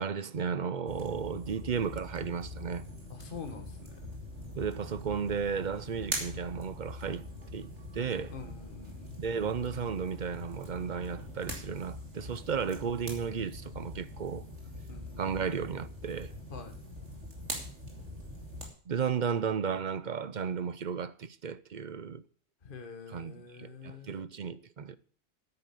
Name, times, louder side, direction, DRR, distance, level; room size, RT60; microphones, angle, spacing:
voice 1, 0.0-2.8 4.6-7.2 7.5-8.3 9.2-14.4 15.2-16.3 18.9-22.2 23.1-25.0, right 6 dB, 45° right, 0.7 m, -34 dB
sound 1, 0.9-18.7, equal, 70° right, 3.1 m, -43 dB
voice 2, 3.1-3.9 8.3-9.3 14.9-15.2 16.5-16.7 22.6-24.1, left 5 dB, 45° left, 1.5 m, -46 dB
9.8 x 8.8 x 8.3 m
omnidirectional pair, 1.3 m